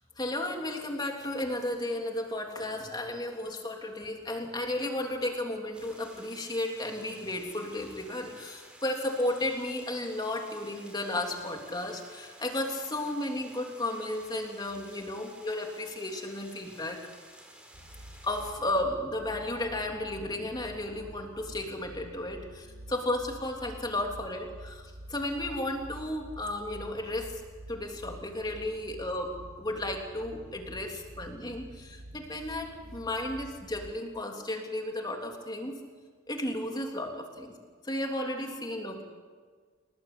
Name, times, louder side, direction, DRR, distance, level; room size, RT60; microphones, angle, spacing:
voice 1, 0.2-17.0 18.2-27.4 27.7-35.7 36.3-37.5 37.8-39.0, left 1 dB, 20° left, 2 dB, 3.3 m, -34 dB
sound 1, 5.7-18.5, right 1 dB, 5° right, 4.5 m, -53 dB
sound 2, 17.7-33.9, right 1 dB, 85° right, 1.5 m, -48 dB
29.0 x 19.0 x 8.6 m, 1.5 s
head